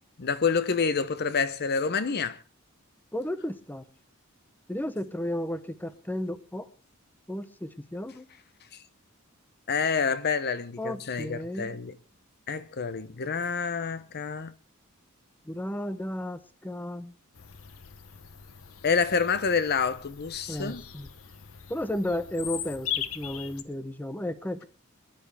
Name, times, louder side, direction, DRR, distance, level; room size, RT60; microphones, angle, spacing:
voice 1, 0.2-2.4 9.7-11.9 12.5-14.5 18.8-20.8, left 5 dB, 50° left, 0.7 m, -28 dB
voice 2, 3.1-3.9 4.7-6.7 7.3-8.3 10.8-11.8 15.4-17.1 20.5-21.1 21.7-24.6, left 1 dB, 10° left, 0.7 m, -33 dB
Bird vocalization bird call bird song, 17.3-23.6, left 10 dB, 75° left, 0.9 m, -39 dB
24.0 x 10.5 x 3.4 m
head